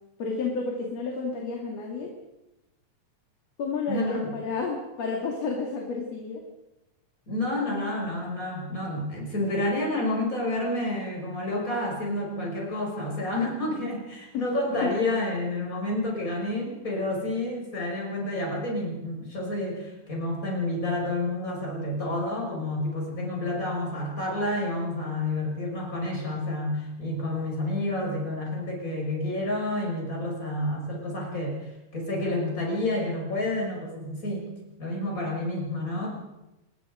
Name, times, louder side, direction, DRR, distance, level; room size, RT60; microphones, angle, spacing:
voice 1, 0.2-2.1 3.6-6.4 14.3-14.5 14.8-14.9, left 4 dB, 60° left, 0 dB, 3.6 m, -31 dB
voice 2, 3.9-4.3 7.3-34.5 34.8-36.1, left 1 dB, 25° left, -1 dB, 6.4 m, -29 dB
26.5 x 20.5 x 5.2 m, 0.97 s
omnidirectional pair, 3.5 m